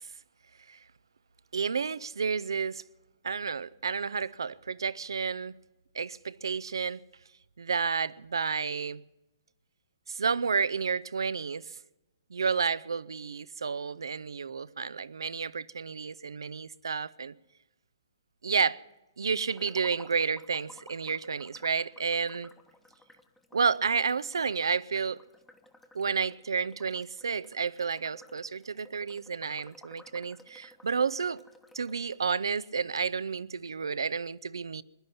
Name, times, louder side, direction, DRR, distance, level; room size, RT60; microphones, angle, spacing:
voice 1, 1.5-2.8 3.2-5.5 5.9-7.0 7.6-9.0 10.1-11.7 12.3-17.3 18.4-18.8 19.2-22.5 23.5-25.2 25.9-31.4 31.7-34.8, right 5 dB, 85° right, 0.6 m, -31 dB
sound 1, 19.5-32.2 32.6-32.7 33.0-33.1, left 1 dB, 5° left, 1.1 m, -56 dB
21.0 x 12.0 x 5.7 m
hypercardioid pair, 140°, 2 cm